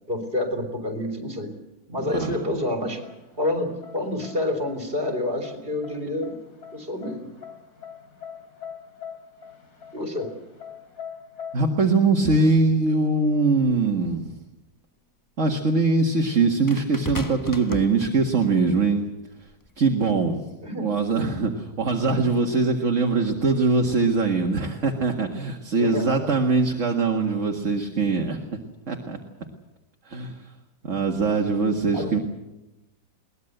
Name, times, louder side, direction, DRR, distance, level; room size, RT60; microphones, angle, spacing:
voice 1, 0.1-1.5 1.9-3.0 3.4-6.4 6.7-7.3 9.9-10.3 20.6-21.0 25.8-26.3 31.9-32.2, left 1 dB, 35° right, 6 dB, 3.6 m, -28 dB
sound 1, 1.9-11.6, left 7 dB, 70° left, 3.9 m, -44 dB
voice 2, 2.1-2.5 11.5-14.3 15.4-19.1 19.8-20.4 20.8-28.4 28.9-29.2 30.1-30.4 30.8-32.2, right 3 dB, 50° right, 2 dB, 2.2 m, -22 dB
sound 2, 13.8-13.9 16.7-18.6 19.5-19.7, left 2 dB, 15° left, 0.9 m, -35 dB
22.5 x 19.5 x 8.0 m, 1.0 s
omnidirectional pair, 1.7 m